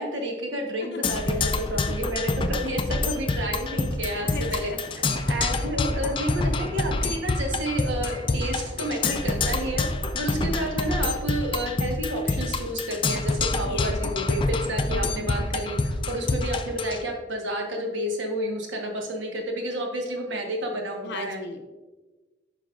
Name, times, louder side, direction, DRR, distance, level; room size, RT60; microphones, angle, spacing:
voice 1, 0.0-4.7 5.3-9.9 10.1-21.4, right 1 dB, 70° right, 1 dB, 1.2 m, -30 dB
Percussion, 1.0-17.0, left 3 dB, 25° left, 0.3 m, -27 dB
sound 1, 3.1-11.1, right 2 dB, 45° right, 0.6 m, -46 dB
voice 2, 4.2-5.5 13.6-14.3 14.9-15.6 16.1-16.3 21.0-21.7, left 3 dB, 60° left, 6 dB, 0.6 m, -40 dB
9.3 x 5.4 x 2.4 m, 1.2 s
head